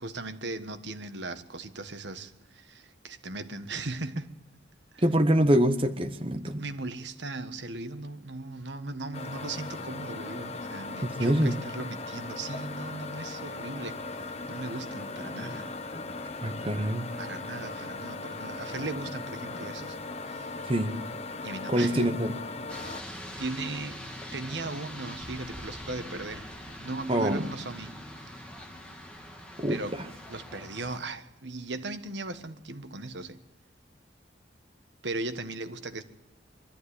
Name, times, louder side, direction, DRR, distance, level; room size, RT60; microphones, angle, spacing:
voice 1, 0.0-4.3 4.9-5.0 6.4-15.7 17.2-20.0 20.2-20.6 21.4-22.2 23.4-26.5 26.8-27.9 28.2-28.5 29.7-33.4 35.0-36.0, right 2 dB, 70° right, 1.4 m, -38 dB
voice 2, 5.0-6.6 11.0-11.6 16.4-17.1 20.7-20.9 21.7-22.3 27.1-27.5 29.6-30.1, right 1 dB, 30° right, 1.0 m, -25 dB
sound 1, 9.1-23.0, left 3 dB, 35° left, 1.2 m, -38 dB
sound 2, 22.7-31.0, equal, 5° left, 2.6 m, -43 dB
23.5 x 13.5 x 9.9 m
head